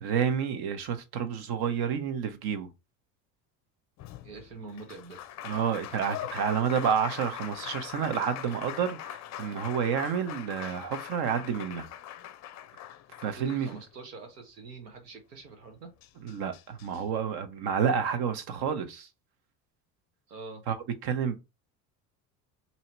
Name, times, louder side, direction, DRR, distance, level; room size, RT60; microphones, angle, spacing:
voice 1, 0.0-2.7 5.4-11.9 13.2-13.7 16.2-19.1 20.7-20.8 21.0-21.4, right 7 dB, 55° right, 1.0 m, -29 dB
Applause, 4.0-14.2 15.6-15.7 16.0-17.0, left 12 dB, 40° left, 0.5 m, -42 dB
voice 2, 4.2-5.3 13.4-15.9 20.3-20.6, right 3 dB, 90° right, 0.9 m, -45 dB
2.8 x 2.7 x 4.4 m
hypercardioid pair, 70°, 46 cm